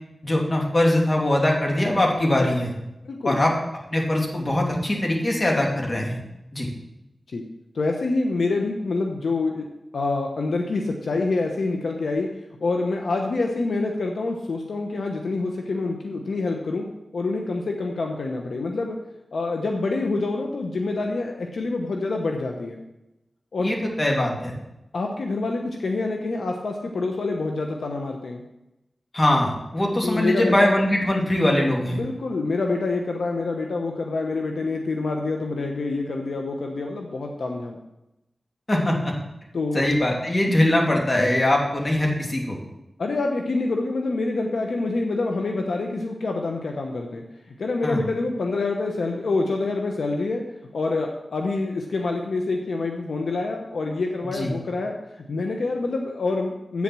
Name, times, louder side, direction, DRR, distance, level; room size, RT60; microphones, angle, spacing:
voice 1, 0.2-2.7 3.2-3.5 3.9-6.2 6.5-6.7 23.6-24.6 29.1-32.0 38.7-39.1 39.7-42.6 47.8-48.0 54.2-54.5, left 1 dB, 40° left, -1 dB, 2.7 m, -22 dB
voice 2, 3.0-3.4 7.3-7.4 7.7-9.7 9.9-12.3 12.6-16.9 17.1-19.0 19.3-22.8 23.5-23.7 24.9-28.4 30.0-30.7 31.9-37.8 39.5-39.8 43.0-50.4 50.7-54.9 55.3-56.8, left 3 dB, 85° left, 2 dB, 0.9 m, -26 dB
8.7 x 7.3 x 6.1 m, 0.91 s
cardioid pair, 40°, 0 cm